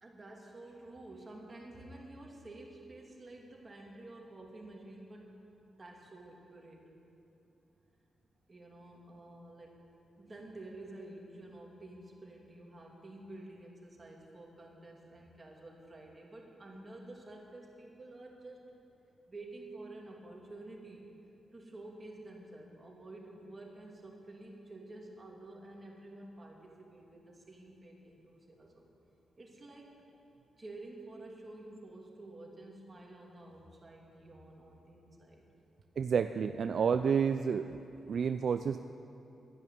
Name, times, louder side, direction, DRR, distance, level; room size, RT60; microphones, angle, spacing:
voice 1, 0.0-5.3 5.8-6.8 8.5-9.8 10.2-18.6 19.3-21.1 21.5-28.9 29.4-29.9 30.6-35.4, right 2 dB, 25° right, -1 dB, 2.7 m, -50 dB
voice 2, 36.0-37.8 38.1-38.8, right 6 dB, 60° right, 9 dB, 0.4 m, -30 dB
11.5 x 11.0 x 9.2 m, 2.8 s
cardioid pair, 105°, 0 cm